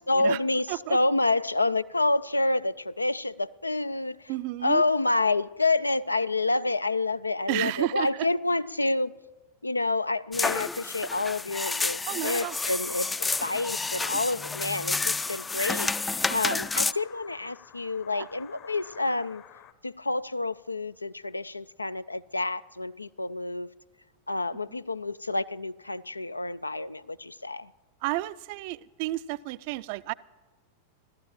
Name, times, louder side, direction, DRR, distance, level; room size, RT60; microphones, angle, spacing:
voice 1, 0.1-4.3 4.6-9.2 9.6-15.9 16.3-19.4 19.8-23.7 24.3-27.7, left 2 dB, 80° left, 0.4 m, -28 dB
voice 2, 4.3-4.8 7.5-8.3 12.1-12.6 16.3-16.6 18.1-18.3 24.7-24.8 28.0-30.1, right 18 dB, 45° right, 0.5 m, -32 dB
sound 1, 10.3-16.9, left 3 dB, 10° left, 0.4 m, -30 dB
sound 2, 12.6-19.7, left 10 dB, 40° left, 0.9 m, -52 dB
15.5 x 12.5 x 7.3 m
figure-of-eight pair, 90°, 0 cm